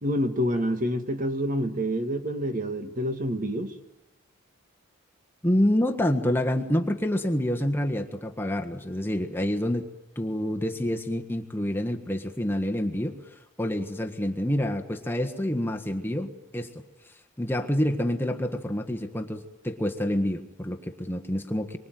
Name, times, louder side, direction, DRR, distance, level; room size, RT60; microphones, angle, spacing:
voice 1, 0.0-3.7, equal, 40° right, 7 dB, 1.9 m, -27 dB
voice 2, 5.4-9.9 10.1-13.2 13.6-16.7 17.4-21.8, left 1 dB, 10° left, 3 dB, 1.5 m, -27 dB
26.5 x 24.0 x 9.3 m, 0.98 s
head